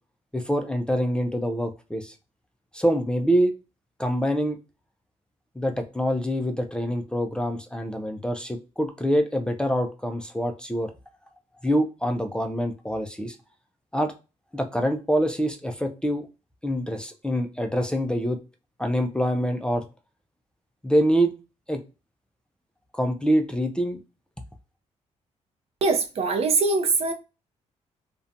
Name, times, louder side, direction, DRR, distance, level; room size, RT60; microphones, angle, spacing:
voice 1, 0.3-2.1 2.7-3.5 4.0-4.6 5.6-10.9 11.6-13.4 13.9-14.1 14.5-16.3 16.6-18.4 18.8-19.8 20.8-21.3 21.7-21.8 22.9-24.0, equal, 5° left, 0.4 m, -25 dB
voice 2, 25.8-27.1, right 4 dB, 55° right, 0.5 m, -22 dB
2.6 x 2.2 x 2.4 m
cardioid pair, 110°, 12 cm